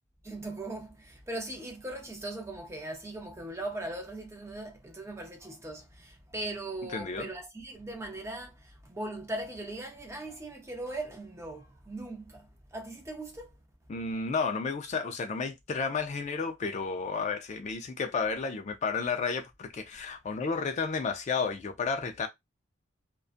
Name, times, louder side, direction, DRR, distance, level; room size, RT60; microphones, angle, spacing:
voice 1, 0.2-13.6 14.1-14.2, right 2 dB, 15° right, 0.5 m, -39 dB
voice 2, 6.9-7.3 13.9-22.3, left 5 dB, 35° left, 0.3 m, -32 dB
2.5 x 2.2 x 2.4 m
head